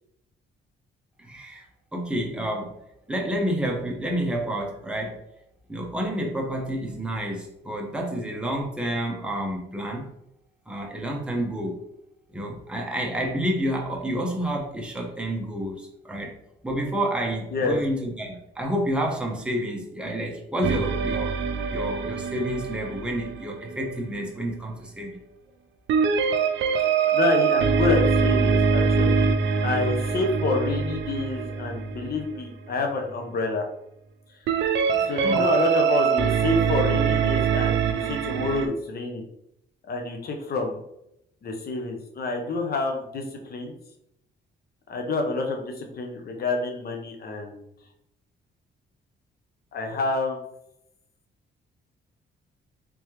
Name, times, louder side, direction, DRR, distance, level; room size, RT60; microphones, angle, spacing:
voice 1, 1.2-1.6 1.9-2.7 3.1-5.2 5.7-10.1 10.7-11.8 12.3-16.3 16.6-21.4 21.7-25.2 35.2-35.5, equal, 5° right, 0 dB, 0.8 m, -29 dB
sound 1, 20.6-24.0 25.9-32.4 34.5-38.7, right 6 dB, 65° right, 0.5 m, -24 dB
voice 2, 26.8-29.3 29.6-33.6 35.1-39.2 39.9-40.8 41.4-43.8 44.9-47.7 49.7-50.4, left 3 dB, 50° left, 3 dB, 0.9 m, -28 dB
3.5 x 3.2 x 3.1 m, 0.80 s
cardioid pair, 90°, 20 cm